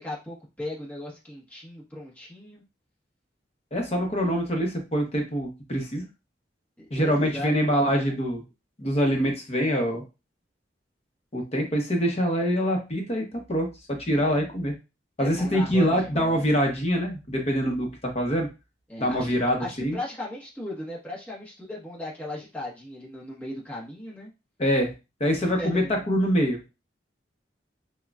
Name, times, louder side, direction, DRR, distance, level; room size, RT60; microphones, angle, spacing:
voice 1, 0.0-2.6 6.8-7.5 14.2-14.5 15.2-16.4 18.9-24.3 25.4-26.0, left 1 dB, 10° left, -5 dB, 1.0 m, -37 dB
voice 2, 3.7-6.1 6.9-8.4 8.8-10.0 11.3-14.7 15.2-18.5 19.0-20.0 24.6-24.9 25.2-26.7, equal, 35° left, 2 dB, 0.8 m, -25 dB
6.0 x 2.3 x 2.3 m, 0.27 s
head